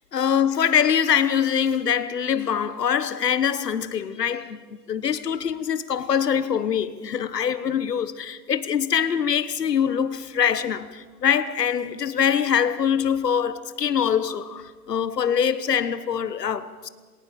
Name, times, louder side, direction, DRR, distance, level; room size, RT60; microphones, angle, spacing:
voice 1, 0.1-16.9, left 8 dB, 85° left, 1.4 m, -24 dB
20.5 x 18.0 x 7.1 m
hypercardioid pair, 175°, 47 cm